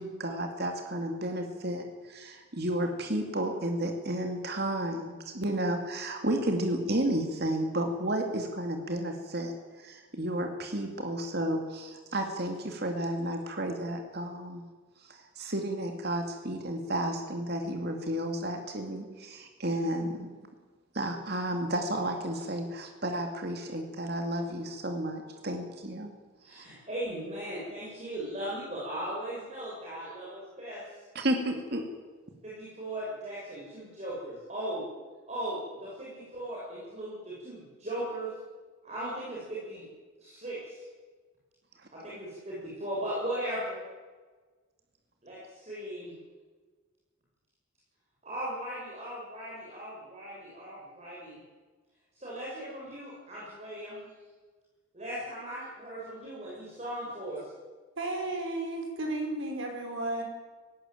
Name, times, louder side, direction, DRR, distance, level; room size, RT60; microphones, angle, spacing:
voice 1, 0.0-14.6 15.0-20.3 20.9-26.1 26.4-26.6 31.1-31.8, right 1 dB, 50° right, 4 dB, 2.4 m, -32 dB
voice 2, 26.4-30.8 32.4-34.9 35.3-38.3 38.8-39.8 40.2-40.8 41.9-43.8 45.2-46.1 48.2-51.4 52.1-54.0 54.9-57.5, right 1 dB, 35° right, -7 dB, 7.2 m, -38 dB
voice 3, 58.0-60.2, right 2 dB, 70° right, 2 dB, 5.5 m, -33 dB
19.0 x 17.0 x 9.1 m, 1.4 s
head